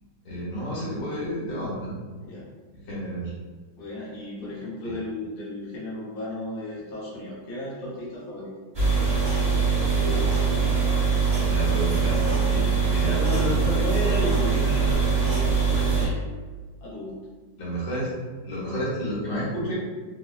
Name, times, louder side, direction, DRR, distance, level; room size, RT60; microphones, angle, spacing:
voice 1, 0.2-1.9 2.9-3.3 4.8-4.9 9.9-10.7 11.4-14.1 17.6-18.1 18.4-19.7, right 1 dB, 75° left, -8 dB, 1.7 m, -31 dB
voice 2, 3.8-8.6 13.0-16.2 16.8-17.1, left 1 dB, 45° left, -7 dB, 0.8 m, -33 dB
sound 1, 8.7-16.1, right 5 dB, 45° right, 0.3 m, -22 dB
3.5 x 2.2 x 2.3 m, 1.4 s
omnidirectional pair, 1.9 m